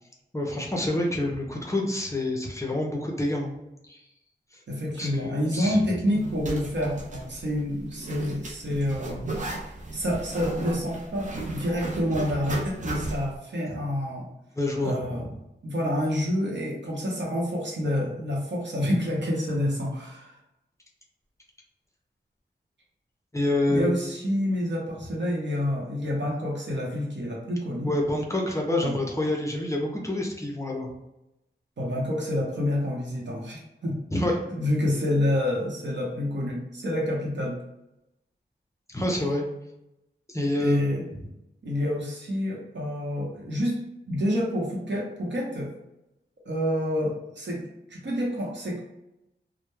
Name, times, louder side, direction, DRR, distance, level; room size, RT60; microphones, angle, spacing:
voice 1, 0.3-3.5 3.9-4.0 5.0-5.8 14.6-15.3 23.3-24.0 27.8-30.9 34.1-34.3 38.9-39.5 40.3-40.8, left 1 dB, 15° left, -1 dB, 0.5 m, -27 dB
voice 2, 4.7-9.3 9.9-14.3 14.8-15.3 15.6-20.4 23.7-27.9 28.8-29.0 31.8-34.0 34.5-37.6 40.6-41.1 41.6-43.8 44.1-45.7 46.5-48.8, left 1 dB, 75° right, -3 dB, 0.8 m, -28 dB
Zipper (clothing), 6.1-13.4, right 2 dB, 45° right, 0.5 m, -35 dB
2.2 x 2.0 x 3.0 m, 0.90 s
wide cardioid pair, 100°, 19 cm